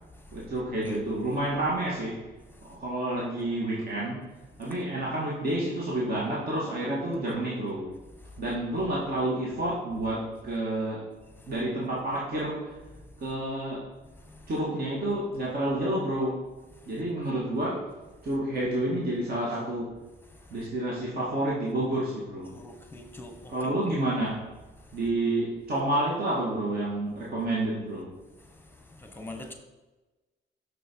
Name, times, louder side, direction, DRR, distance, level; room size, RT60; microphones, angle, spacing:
voice 1, 0.3-2.2 2.7-4.2 4.6-8.0 8.4-11.1 11.5-12.8 13.2-13.9 14.5-16.4 16.8-17.8 18.2-20.0 20.5-22.5 23.5-24.4 24.9-28.1, right 1 dB, 50° right, -5 dB, 1.9 m, -29 dB
voice 2, 22.5-23.8 29.0-29.5, left 2 dB, 10° left, 4 dB, 1.2 m, -42 dB
6.4 x 6.3 x 4.6 m, 1.2 s
cardioid pair, 90°, 20 cm